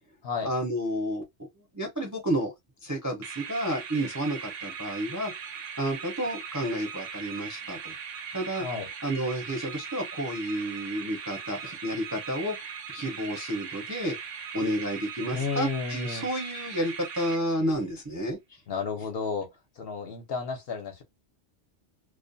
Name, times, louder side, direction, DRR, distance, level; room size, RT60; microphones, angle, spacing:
voice 1, 0.4-1.2 1.7-2.5 2.8-5.3 5.8-7.9 8.3-8.7 9.0-12.6 12.9-14.1 14.5-18.4, equal, 20° right, 0.5 m, -30 dB
sound 1, 3.2-17.9, right 7 dB, 90° right, 0.9 m, -39 dB
voice 2, 15.3-16.3 18.7-19.5 19.8-21.0, left 5 dB, 60° left, 0.8 m, -32 dB
2.4 x 2.1 x 2.5 m
omnidirectional pair, 1.3 m